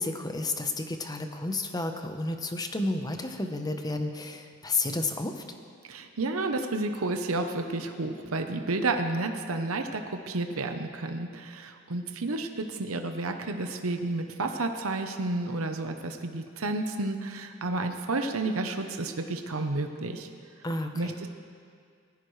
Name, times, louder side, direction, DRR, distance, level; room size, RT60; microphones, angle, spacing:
voice 1, 0.0-5.4 20.6-21.2, left 2 dB, 20° left, 5 dB, 0.9 m, -31 dB
voice 2, 5.9-20.3 20.9-21.3, right 2 dB, 75° right, 6 dB, 0.9 m, -31 dB
19.0 x 15.0 x 3.2 m, 2.2 s
head